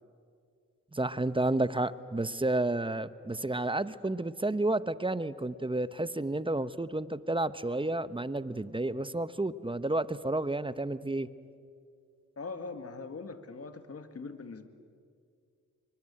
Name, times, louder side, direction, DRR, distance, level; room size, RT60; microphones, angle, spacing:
voice 1, 0.9-11.3, right 2 dB, 15° right, 14 dB, 0.9 m, -31 dB
voice 2, 12.4-14.7, left 4 dB, 45° left, 9 dB, 2.0 m, -41 dB
27.0 x 24.0 x 8.9 m, 2.2 s
cardioid pair, 70°, 32 cm